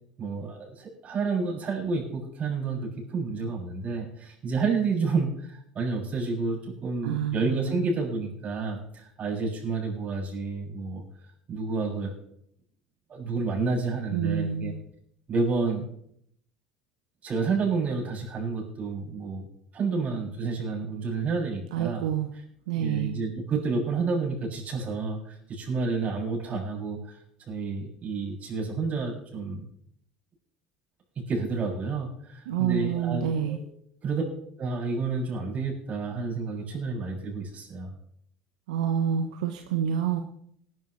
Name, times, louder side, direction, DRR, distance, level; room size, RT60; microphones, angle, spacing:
voice 1, 0.2-11.0 11.5-12.1 13.1-14.7 15.3-15.9 17.2-19.5 19.7-22.0 22.8-29.7 31.2-33.7 34.0-34.2 34.6-37.9, right 4 dB, 40° right, -1 dB, 7.1 m, -30 dB
voice 2, 7.0-7.9 14.1-14.7 21.7-22.3 22.7-23.1 32.5-33.6 38.7-40.2, right 9 dB, 80° right, 5 dB, 1.0 m, -28 dB
19.5 x 11.5 x 3.3 m, 0.69 s
hypercardioid pair, 75°, 4 cm